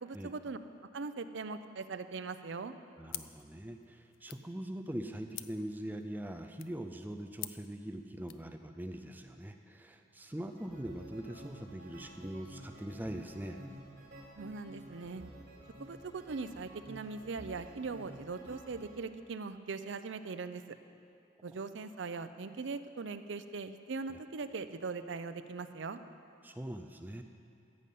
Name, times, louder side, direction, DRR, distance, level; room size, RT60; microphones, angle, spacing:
voice 1, 0.0-0.6 0.9-2.7 14.4-15.2 15.8-20.6 21.4-26.0, right 4 dB, 75° right, 10 dB, 0.5 m, -40 dB
voice 2, 3.0-13.6 26.4-27.2, right 1 dB, 10° right, 6 dB, 0.4 m, -42 dB
sound 1, 3.1-8.5, left 14 dB, 90° left, 0.5 m, -49 dB
sound 2, 10.3-19.0, equal, 55° right, 2.9 m, -51 dB
14.5 x 5.5 x 8.3 m, 2.5 s
head